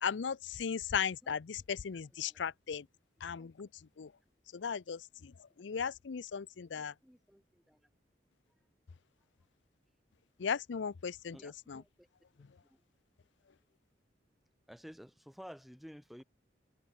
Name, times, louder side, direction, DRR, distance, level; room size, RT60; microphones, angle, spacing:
voice 1, 0.0-2.9 3.2-3.7 4.0-4.1 4.5-5.3 5.6-6.9 10.4-11.8, left 7 dB, 80° left, 0.5 m, -37 dB
voice 2, 1.1-1.4 1.9-2.0 2.3-2.4 5.8-5.9 7.0-7.8 11.3-12.1 12.7-12.8 14.7-16.2, equal, ahead, 4.0 m, -53 dB
head